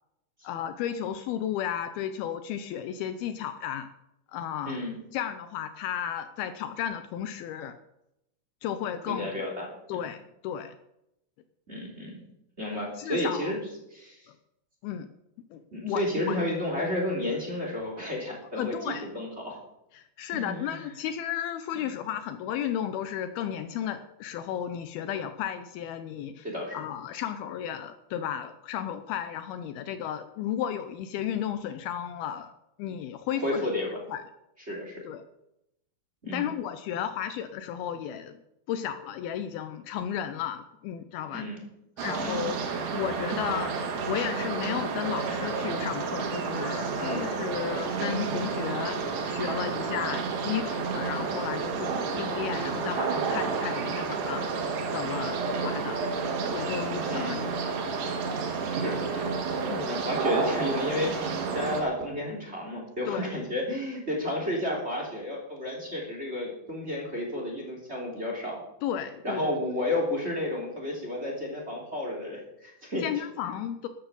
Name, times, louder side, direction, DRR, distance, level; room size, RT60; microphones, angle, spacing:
voice 1, 0.4-3.9 4.3-4.8 5.1-7.8 8.6-9.3 9.9-10.8 13.0-13.5 14.8-15.1 15.5-16.4 18.6-19.1 19.9-26.5 26.7-32.5 32.8-33.7 34.1-34.2 35.1-35.2 36.3-38.4 38.7-41.5 42.0-49.0 49.3-54.4 54.9-56.0 56.5-57.6 59.7-59.9 63.1-63.3 68.8-69.6 73.0-73.9, left 10 dB, 80° left, 10 dB, 2.4 m, -33 dB
voice 2, 9.0-9.7 11.7-12.2 12.6-13.6 13.9-14.3 15.7-19.6 20.3-20.8 21.7-21.9 26.4-26.8 33.4-33.9 34.7-35.0 36.2-36.5 41.3-41.6 42.1-42.4 47.0-47.3 57.1-57.4 58.7-68.6 69.2-73.0, left 1 dB, 20° right, -1 dB, 2.8 m, -32 dB
sound 1, 42.0-61.8, right 5 dB, 80° right, 3.7 m, -30 dB
13.0 x 8.8 x 7.1 m, 0.85 s
omnidirectional pair, 4.7 m